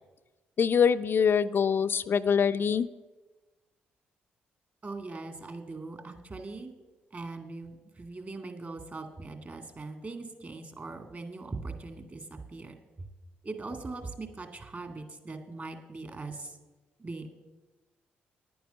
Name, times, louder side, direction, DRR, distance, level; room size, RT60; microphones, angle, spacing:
voice 1, 0.6-2.9, left 7 dB, 50° left, 10 dB, 0.4 m, -24 dB
voice 2, 4.8-6.7 7.1-13.1 13.4-16.5 17.0-17.3, right 3 dB, 35° right, 7 dB, 2.1 m, -41 dB
10.0 x 9.3 x 6.8 m, 1.2 s
hypercardioid pair, 40°, 5 cm